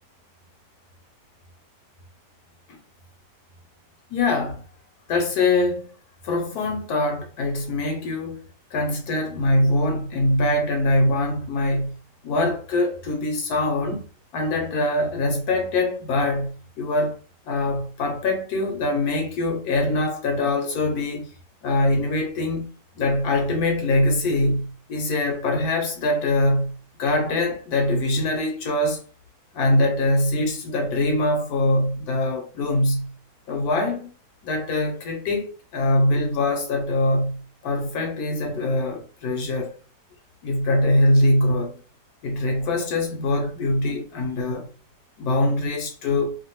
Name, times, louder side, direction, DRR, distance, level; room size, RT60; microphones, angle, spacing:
voice 1, 4.1-4.6 5.1-5.9 6.2-8.4 8.7-12.0 12.2-14.1 14.3-17.2 17.4-21.3 21.6-29.0 29.5-33.1 33.5-34.1 34.4-39.7 40.4-41.8 42.2-44.7 45.2-46.4, left 1 dB, 70° left, 1.1 m, -23 dB
2.7 x 2.3 x 2.8 m
omnidirectional pair, 1.8 m